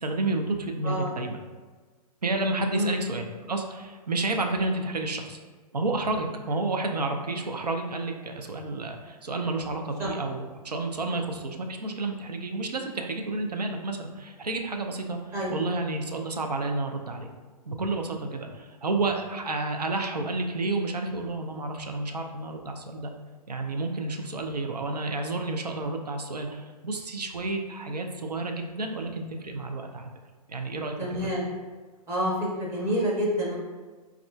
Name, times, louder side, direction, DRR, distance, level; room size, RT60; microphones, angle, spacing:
voice 1, 0.0-1.4 2.2-5.4 5.7-10.4 10.6-17.3 17.7-23.1 23.5-30.1 30.5-30.9 31.2-31.4, right 2 dB, 90° right, 3 dB, 0.4 m, -30 dB
voice 2, 31.0-31.5 32.1-33.5, equal, 15° right, -5 dB, 0.5 m, -28 dB
4.3 x 2.4 x 2.2 m, 1.4 s
figure-of-eight pair, 115°, 20 cm